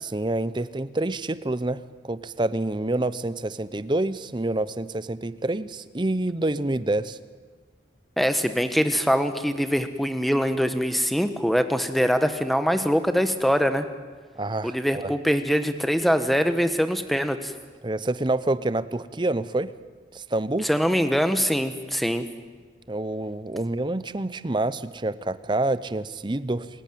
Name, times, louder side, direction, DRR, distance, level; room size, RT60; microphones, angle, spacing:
voice 1, 0.0-7.2 14.4-15.1 17.8-19.7 20.1-20.7 22.9-26.7, right 2 dB, 25° right, 15 dB, 0.7 m, -27 dB
voice 2, 8.2-13.9 14.6-17.5 20.6-22.3, equal, ahead, 9 dB, 1.2 m, -23 dB
27.5 x 15.5 x 9.2 m, 1.5 s
head